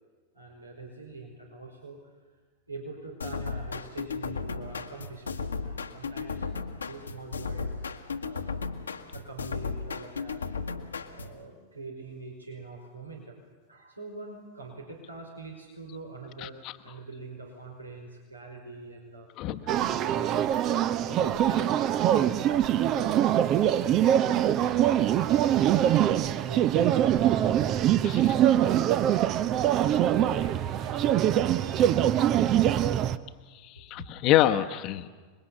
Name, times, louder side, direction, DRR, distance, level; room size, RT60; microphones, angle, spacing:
voice 1, 0.3-2.0 2.7-7.8 8.2-8.6 9.1-10.4 11.1-13.4 13.7-19.3 19.7-20.6 21.0-25.2 25.6-27.6 27.9-31.1 31.6-32.5 33.7-34.1, right 3 dB, 80° right, 1 dB, 5.0 m, -44 dB
sound 1, 3.2-11.4, left 5 dB, 75° left, 1.5 m, -35 dB
voice 2, 16.4-16.7 19.4-19.8 33.5-35.1, left 13 dB, 40° left, 8 dB, 1.1 m, -26 dB
sound 2, 19.7-33.2, right 11 dB, 35° right, 0.9 m, -23 dB
27.0 x 22.0 x 7.1 m, 1.4 s
figure-of-eight pair, 90°, 0 cm